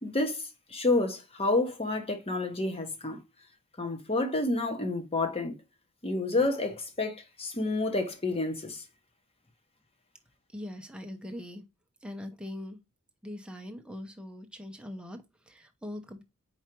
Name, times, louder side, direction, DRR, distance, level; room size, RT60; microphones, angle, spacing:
voice 1, 0.0-3.2 3.8-5.5 6.0-8.8, left 2 dB, 30° left, 1.1 m, -29 dB
voice 2, 10.5-11.6 12.0-12.8 13.2-16.2, left 1 dB, 5° right, 0.8 m, -41 dB
4.8 x 4.5 x 4.5 m
head